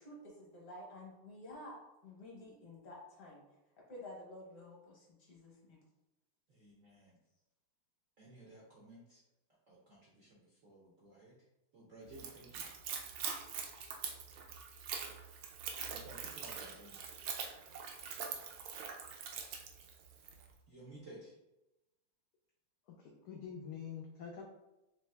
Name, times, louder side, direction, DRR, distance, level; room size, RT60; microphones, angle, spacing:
voice 1, 0.0-3.4 3.9-5.8, left 1 dB, 50° left, -3 dB, 1.4 m, -51 dB
voice 2, 6.5-7.2 8.2-9.2 9.7-11.3 11.7-12.7 15.9-17.1 20.7-21.3, right 1 dB, 60° right, -5 dB, 0.8 m, -56 dB
Splash splatter / Trickle dribble, 12.1-20.4, right 6 dB, 75° right, 1.3 m, -44 dB
voice 3, 22.9-24.4, left 7 dB, 80° left, 0 dB, 0.9 m, -46 dB
3.9 x 3.1 x 3.3 m, 0.96 s
omnidirectional pair, 2.3 m